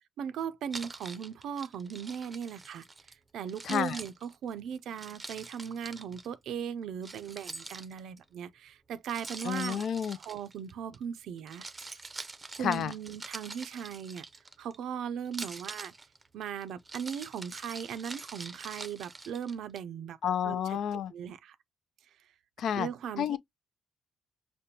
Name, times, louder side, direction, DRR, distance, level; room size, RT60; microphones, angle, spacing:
voice 1, 0.2-2.8 3.3-9.8 10.2-11.6 12.6-14.2 14.6-15.9 16.3-20.2 20.4-20.8 21.1-21.6 22.7-23.4, right 8 dB, 75° right, 0.4 m, -38 dB
Keys jangling, 0.7-3.1 3.5-6.3 7.0-8.2 9.1-11.0 11.4-14.8 15.2-19.8, right 3 dB, 25° right, 0.5 m, -45 dB
voice 2, 3.6-4.0 9.4-10.2 12.6-12.9 20.2-21.1 22.6-22.9 23.2-23.4, left 9 dB, 70° left, 0.3 m, -30 dB
5.1 x 2.1 x 2.8 m
cardioid pair, 90°, 0 cm